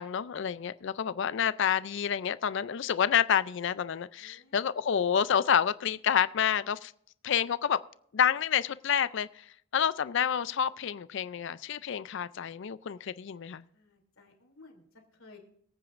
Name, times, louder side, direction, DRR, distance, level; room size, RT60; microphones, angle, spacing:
voice 1, 0.0-6.9 7.2-7.8 8.1-9.4 9.7-13.6, left 8 dB, 60° left, 0.4 m, -28 dB
voice 2, 4.2-4.6 13.7-15.4, left 3 dB, 80° left, 3.0 m, -56 dB
23.0 x 9.0 x 2.5 m
head